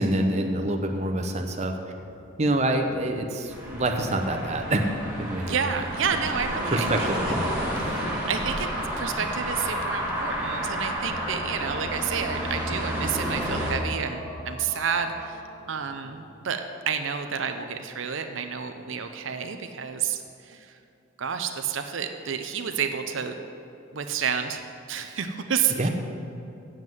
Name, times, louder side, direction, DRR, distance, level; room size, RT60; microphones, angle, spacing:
voice 1, 0.0-1.8 2.4-4.8 5.2-5.7 6.2-6.3 6.7-7.5 25.8-25.9, right 1 dB, 30° right, 4 dB, 0.7 m, -26 dB
sound 1, 3.5-13.7, equal, 5° right, 2.0 m, -30 dB
voice 2, 5.4-7.1 7.8-8.7 9.0-15.4 15.7-20.8 21.2-23.4 23.9-24.6 24.9-25.9, right 7 dB, 70° right, 6 dB, 0.6 m, -30 dB
sound 2, 8.4-16.2, equal, 30° left, 2.5 m, -47 dB
7.8 x 7.5 x 7.7 m, 2.6 s
head